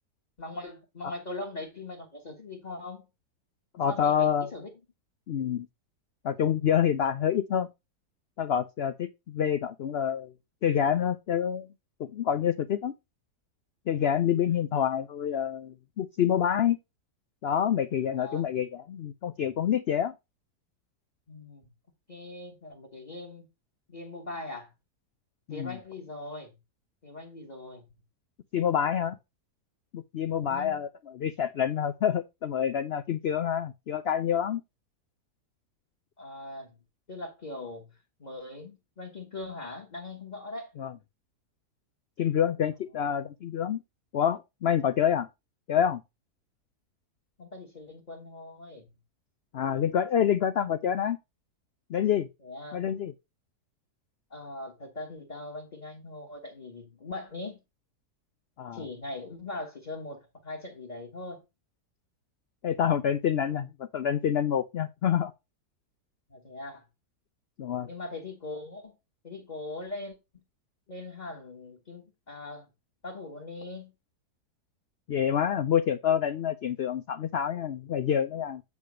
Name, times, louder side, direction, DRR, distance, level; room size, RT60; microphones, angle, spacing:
voice 1, 0.4-3.0 3.9-4.7 14.3-14.6 18.1-18.4 21.3-21.7 22.1-23.5 23.9-24.7 25.5-26.5 27.0-27.8 30.3-30.8 36.2-36.7 37.1-37.9 38.2-40.7 47.4-48.9 52.4-52.9 54.3-57.6 58.7-61.4 66.3-66.8 67.9-68.9 69.2-70.4 70.9-72.7 73.0-73.9, left 2 dB, 25° left, 1.7 m, -41 dB
voice 2, 3.7-4.5 5.3-5.7 6.2-7.7 8.4-10.3 10.6-11.7 12.0-12.9 13.9-16.8 17.4-20.1 25.5-25.8 28.5-29.2 29.9-30.9 31.1-34.6 40.8-40.9 42.2-43.8 44.1-45.3 45.7-46.0 49.5-51.2 51.9-52.3 52.7-53.1 58.6-58.8 62.6-65.3 67.6-67.9 75.1-78.6, left 9 dB, 85° left, 0.5 m, -27 dB
8.4 x 3.3 x 6.3 m
omnidirectional pair, 1.7 m